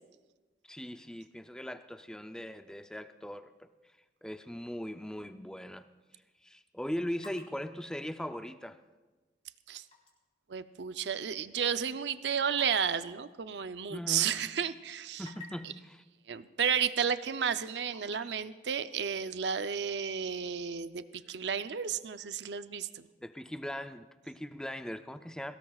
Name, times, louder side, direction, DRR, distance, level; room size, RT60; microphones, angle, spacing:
voice 1, 0.6-3.7 4.2-5.9 6.4-8.8 13.9-14.4 15.2-16.0 23.2-25.6, equal, 5° left, 9 dB, 0.4 m, -40 dB
sound 1, 7.2-10.2 10.6-10.7 11.3-14.4 14.8-15.8 16.8-16.9 17.3-18.2, left 3 dB, 35° left, 3.7 m, -55 dB
voice 2, 10.5-15.2 16.3-23.0, right 7 dB, 80° right, 12 dB, 0.5 m, -32 dB
22.5 x 18.0 x 2.4 m, 1.3 s
head